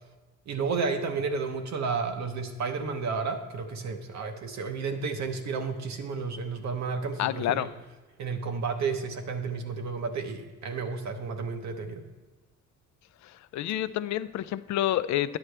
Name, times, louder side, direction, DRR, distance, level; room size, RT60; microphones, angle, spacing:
voice 1, 0.5-7.7 8.2-12.0, right 4 dB, 65° right, 5 dB, 0.8 m, -32 dB
voice 2, 7.2-7.7 13.5-15.4, left 13 dB, 70° left, 16 dB, 0.4 m, -28 dB
9.6 x 7.3 x 3.3 m, 1.3 s
cardioid pair, 90°, 30 cm